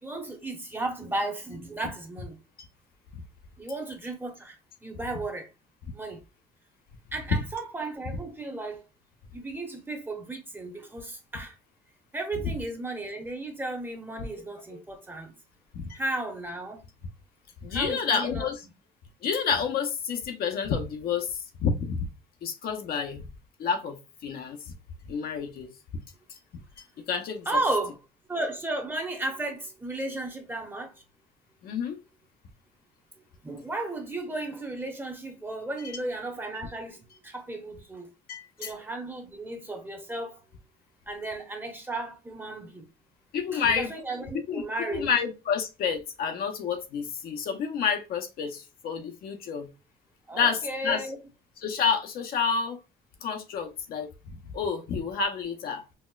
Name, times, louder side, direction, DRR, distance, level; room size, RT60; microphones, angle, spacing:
voice 1, 0.0-2.4 3.6-5.5 5.9-6.2 7.1-8.8 9.3-11.5 12.1-15.3 15.9-16.8 17.7-18.5 27.5-28.0 28.3-31.0 33.2-38.1 38.6-40.4 41.1-42.9 43.5-45.1 50.3-51.2, right 2 dB, 10° right, 0.8 m, -34 dB
voice 2, 17.6-18.6 19.2-22.1 22.4-23.2 23.6-24.6 25.1-25.7 26.3-26.4 27.1-27.5 31.6-32.0 38.3-38.7 43.3-43.9 44.5-49.7 50.3-51.0 51.6-52.8 53.2-54.1 54.5-55.8, left 6 dB, 60° left, 0.6 m, -29 dB
4.1 x 2.1 x 2.2 m
cardioid pair, 110°, 17 cm